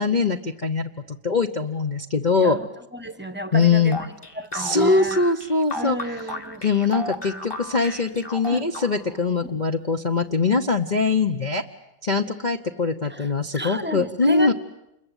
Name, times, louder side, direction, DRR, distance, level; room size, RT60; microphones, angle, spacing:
voice 1, 0.0-2.6 3.5-4.0 4.5-6.0 6.6-11.6 12.0-14.5, left 4 dB, 30° left, 3 dB, 0.8 m, -22 dB
voice 2, 2.4-5.2 5.7-6.6 8.5-8.7 9.4-9.6 13.0-14.5, equal, 5° right, 11 dB, 1.0 m, -33 dB
sound 1, 3.9-9.2, left 1 dB, 15° left, 1.3 m, -34 dB
28.5 x 22.0 x 9.2 m, 0.88 s
omnidirectional pair, 2.1 m